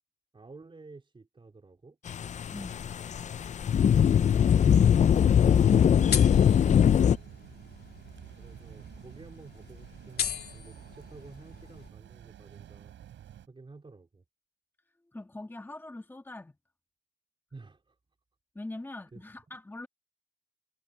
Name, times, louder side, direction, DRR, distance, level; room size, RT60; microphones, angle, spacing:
voice 1, 0.3-2.0 8.4-12.9 13.5-14.2 17.5-18.0 19.1-19.2, right 3 dB, 25° right, 4.3 m, -51 dB
sound 1, 2.1-7.2, left 8 dB, 35° left, 0.5 m, -22 dB
voice 2, 2.5-2.9 15.1-16.5 18.5-19.9, left 2 dB, 10° left, 1.7 m, -42 dB
sound 2, 4.5-11.9, left 8 dB, 55° left, 2.9 m, -40 dB
sound 3, 4.5-13.5, right 10 dB, 70° right, 4.8 m, -49 dB
cardioid pair, 90°, 20 cm